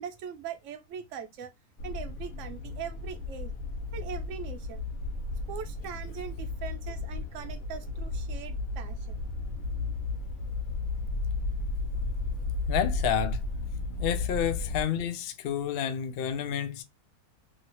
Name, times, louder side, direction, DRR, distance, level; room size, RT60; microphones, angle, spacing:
voice 1, 0.0-1.5 1.8-3.5 3.9-4.8 5.5-9.2, right 8 dB, 65° right, 0.9 m, -41 dB
sound 1, 1.8-14.8, left 3 dB, 70° left, 1.0 m, -34 dB
voice 2, 12.7-13.4 14.0-16.8, left 9 dB, 85° left, 0.5 m, -30 dB
2.8 x 2.7 x 2.9 m
omnidirectional pair, 1.6 m